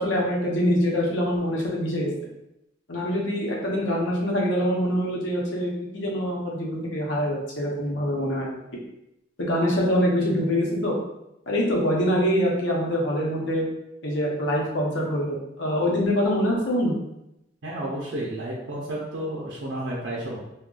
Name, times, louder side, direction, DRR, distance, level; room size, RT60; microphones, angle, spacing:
voice 1, 0.0-2.1 2.9-8.6 9.4-10.9 11.5-13.6 14.0-17.0, equal, 80° left, -2 dB, 0.8 m, -24 dB
voice 2, 17.6-20.4, right 1 dB, 70° right, -5 dB, 0.6 m, -31 dB
2.3 x 2.2 x 3.7 m, 0.86 s
head